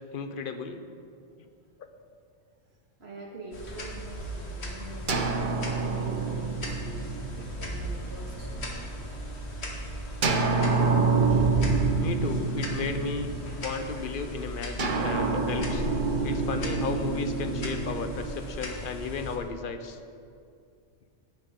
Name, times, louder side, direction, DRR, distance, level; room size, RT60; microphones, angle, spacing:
voice 1, 0.1-0.8 9.6-9.7 11.0-11.7 12.0-13.3 13.6-15.9 16.2-20.0, left 5 dB, 55° left, 8 dB, 0.9 m, -34 dB
voice 2, 2.7-8.7, right 1 dB, 70° right, -3 dB, 2.3 m, -44 dB
sound 1, 3.5-19.4, equal, 80° left, 1.8 m, -36 dB
sound 2, 5.1-8.9 10.2-13.8 14.8-18.9, right 4 dB, 50° right, 1.0 m, -27 dB
16.5 x 10.5 x 3.7 m, 2.4 s
omnidirectional pair, 1.1 m